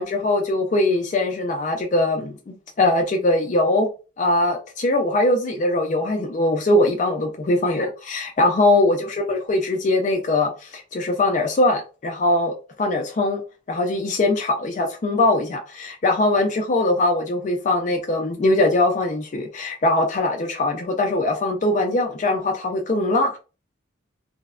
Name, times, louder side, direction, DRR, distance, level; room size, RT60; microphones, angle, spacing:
voice 1, 0.0-3.9 4.2-13.4 13.7-23.4, left 2 dB, 40° left, 0.4 m, -21 dB
3.2 x 2.0 x 2.3 m
head